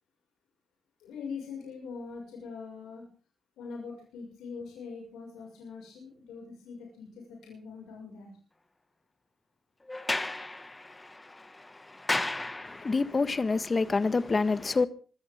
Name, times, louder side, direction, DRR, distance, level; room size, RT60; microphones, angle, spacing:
voice 1, 1.0-3.0 3.6-8.4, left 5 dB, 90° left, 6.3 m, -42 dB
Sliding door, 9.9-13.2, left 2 dB, 25° left, 2.0 m, -34 dB
voice 2, 12.7-14.9, left 4 dB, 45° left, 1.6 m, -26 dB
25.0 x 14.5 x 3.8 m
supercardioid pair, 45°, 0 cm